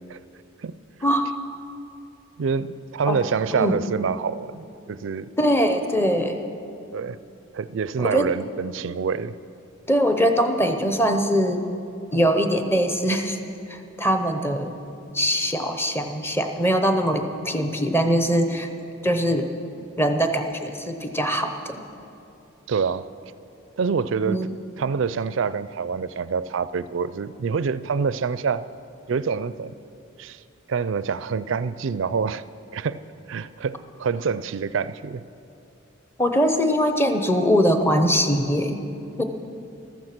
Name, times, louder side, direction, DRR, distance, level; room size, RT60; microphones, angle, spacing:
voice 1, 2.4-5.3 6.9-7.2 7.5-9.4 22.7-23.1 23.8-24.5 24.8-28.7 29.1-29.7 30.2-30.4 30.7-32.4 32.7-33.0 33.3-35.2, right 5 dB, 65° right, 17 dB, 0.4 m, -26 dB
voice 2, 5.4-6.4 8.0-8.2 9.9-11.6 12.1-13.4 13.7-14.7 15.1-18.7 19.0-19.5 20.0-21.8 24.3-24.6 36.2-38.8 39.2-39.3, equal, 10° left, 6 dB, 0.8 m, -22 dB
14.0 x 13.5 x 6.0 m, 2.7 s
head